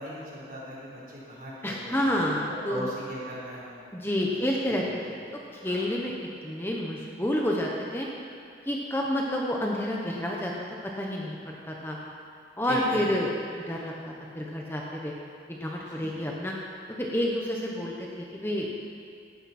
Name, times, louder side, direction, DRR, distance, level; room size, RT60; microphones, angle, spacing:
voice 1, 0.0-4.4 4.7-5.1 5.6-5.8 12.7-13.1 15.9-16.1, equal, 50° right, -6 dB, 4.2 m, -38 dB
voice 2, 1.6-2.8 3.9-4.8 5.6-6.1 6.4-8.1 8.6-10.5 11.0-12.0 12.6-15.1 15.5-16.5 17.0-18.9, left 1 dB, 15° left, -2 dB, 1.1 m, -29 dB
17.0 x 12.0 x 4.4 m, 2.4 s
head